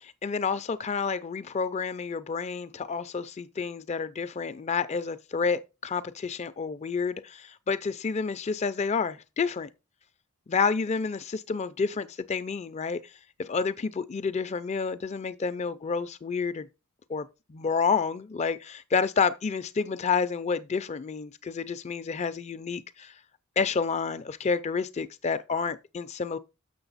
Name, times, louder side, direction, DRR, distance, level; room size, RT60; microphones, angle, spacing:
voice 1, 0.0-9.7 10.5-13.0 13.4-16.7 17.1-23.1 23.6-26.4, left 5 dB, 30° left, 0.4 m, -29 dB
6.8 x 6.3 x 4.0 m
head